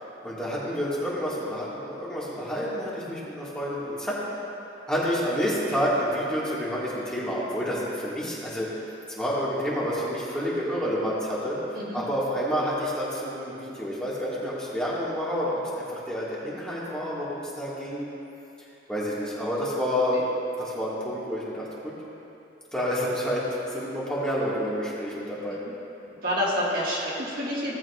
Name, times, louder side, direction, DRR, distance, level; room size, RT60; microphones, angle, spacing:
voice 1, 0.2-4.2 4.9-8.9 9.2-18.1 18.9-20.2 20.6-21.9 22.7-25.6, equal, 5° left, -9 dB, 1.8 m, -29 dB
voice 2, 25.6-27.7, equal, 50° right, -6 dB, 1.7 m, -29 dB
17.5 x 7.5 x 2.4 m, 2.9 s
head